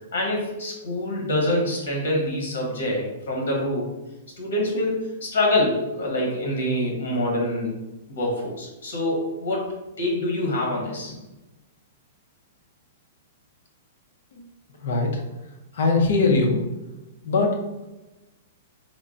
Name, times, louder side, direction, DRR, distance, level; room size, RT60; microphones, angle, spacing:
voice 1, 0.1-3.9 4.4-7.7 8.1-9.7 10.0-11.1, left 1 dB, 85° left, -1 dB, 1.3 m, -25 dB
voice 2, 14.8-15.2 15.7-16.6 17.2-17.6, left 3 dB, 70° left, 2 dB, 0.8 m, -21 dB
3.7 x 2.2 x 3.8 m, 1.0 s
hypercardioid pair, 165°, 0 cm